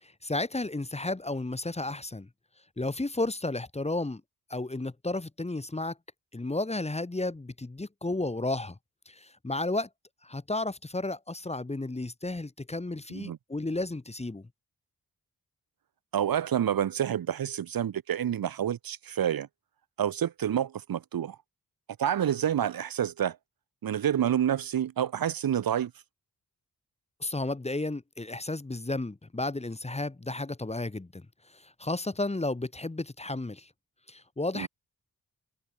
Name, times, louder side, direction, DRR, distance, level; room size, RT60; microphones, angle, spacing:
voice 1, 0.0-2.3 2.8-4.2 4.5-6.0 6.3-8.8 9.1-9.9 10.2-14.5 27.2-31.3 31.5-33.7 34.1-34.7, left 2 dB, 15° left, 1.0 m, -33 dB
voice 2, 16.1-19.5 20.0-21.4 22.0-23.4 23.8-25.9 34.5-34.7, right 10 dB, 60° right, 0.7 m, -28 dB
cardioid pair, 60°, 39 cm